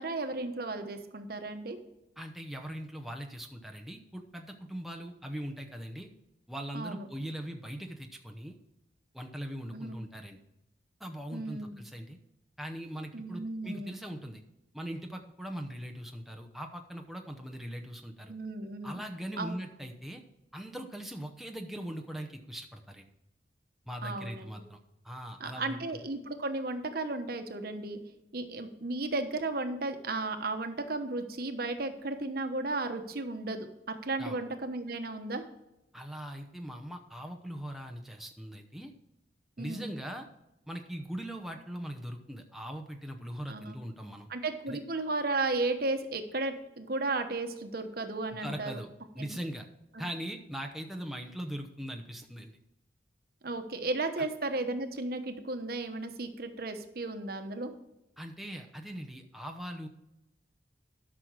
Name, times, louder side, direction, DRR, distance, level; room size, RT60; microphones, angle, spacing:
voice 1, 0.0-1.8 6.7-7.1 9.7-10.0 11.3-11.8 13.1-13.9 18.3-19.0 19.4-19.5 24.0-24.5 25.4-28.0 28.3-33.7 34.0-35.4 39.6-39.9 43.5-43.7 44.3-48.8 49.2-49.3 53.4-57.7, right 2 dB, 55° right, 7 dB, 1.1 m, -34 dB
voice 2, 2.2-6.1 6.5-8.6 9.1-10.4 11.0-12.2 12.6-14.4 14.7-18.3 18.8-20.2 20.5-23.1 23.9-26.0 34.2-34.4 35.9-38.9 39.6-40.3 40.7-44.3 44.7-44.8 48.4-48.9 49.1-49.7 50.0-52.5 54.2-54.3 58.2-59.9, equal, ahead, 3 dB, 0.7 m, -40 dB
12.0 x 6.2 x 4.7 m, 0.89 s
head